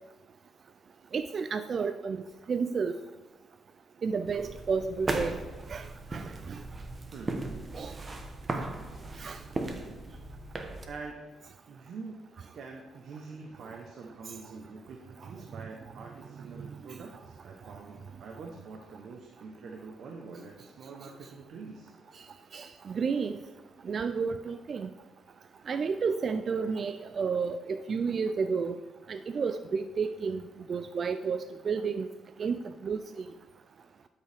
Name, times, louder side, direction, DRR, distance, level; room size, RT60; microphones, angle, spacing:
voice 1, 1.1-2.2 2.5-3.0 4.0-5.4 5.7-5.9 6.1-6.6 7.7-7.9 9.2-9.4 22.5-23.4 23.8-24.9 25.7-28.8 29.1-30.4 30.7-32.1 32.4-33.0, right 5 dB, 45° right, 10 dB, 0.3 m, -31 dB
sound 1, 4.2-10.9, right 2 dB, 30° right, 1.0 m, -37 dB
voice 2, 7.1-7.5 10.9-11.3 11.7-12.2 12.5-21.9, right 4 dB, 65° right, 2 dB, 0.9 m, -45 dB
12.0 x 5.5 x 3.4 m, 1.2 s
cardioid pair, 90°, 0 cm